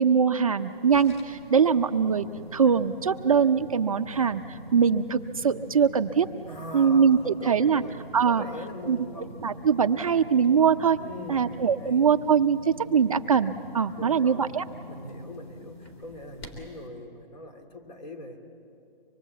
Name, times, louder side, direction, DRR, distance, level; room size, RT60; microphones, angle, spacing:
voice 1, 0.0-2.3 2.5-6.3 6.7-7.8 8.1-8.4 8.9-9.0 9.4-11.0 11.3-14.6, right 6 dB, 40° right, 8 dB, 0.5 m, -22 dB
sound 1, 0.6-16.9, equal, 30° left, 3.1 m, -44 dB
voice 2, 6.5-8.0 8.2-9.4 11.0-12.1 14.0-14.5 14.9-18.4, left 1 dB, 45° left, 5 dB, 2.8 m, -41 dB
25.0 x 21.5 x 8.2 m, 2.6 s
hypercardioid pair, 175°, 29 cm